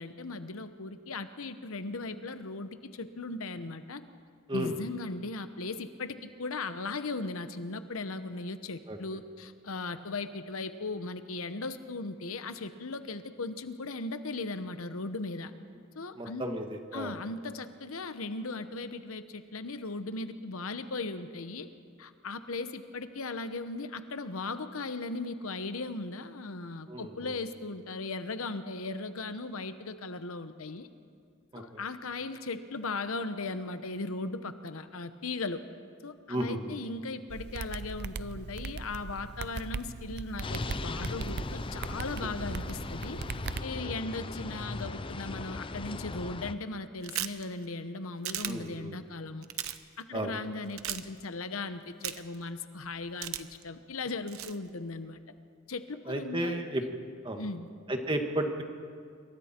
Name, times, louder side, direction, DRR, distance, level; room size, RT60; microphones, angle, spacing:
voice 1, 0.0-4.0 4.5-15.5 15.9-16.4 16.9-21.7 22.0-30.9 31.5-35.6 36.0-43.2 43.6-49.5 50.0-55.2 55.7-56.6 57.4-57.7, left 3 dB, 75° left, 10 dB, 1.0 m, -37 dB
voice 2, 16.2-17.2 26.9-27.3 31.5-31.8 36.3-36.8 43.8-43.9 48.4-49.0 50.1-50.3 56.1-56.8 57.2-57.4 57.9-58.6, right 1 dB, 25° right, 4 dB, 1.8 m, -33 dB
sound 1, 37.3-43.6, right 4 dB, 50° right, 0.5 m, -39 dB
sound 2, 40.4-46.5, left 3 dB, 25° left, 0.5 m, -38 dB
sound 3, 47.0-47.4 48.2-48.5 49.4-49.8 50.8-51.0 52.0-52.3 53.2-53.6 54.3-54.5, right 12 dB, 80° right, 0.9 m, -35 dB
27.0 x 24.0 x 4.5 m, 2.2 s
head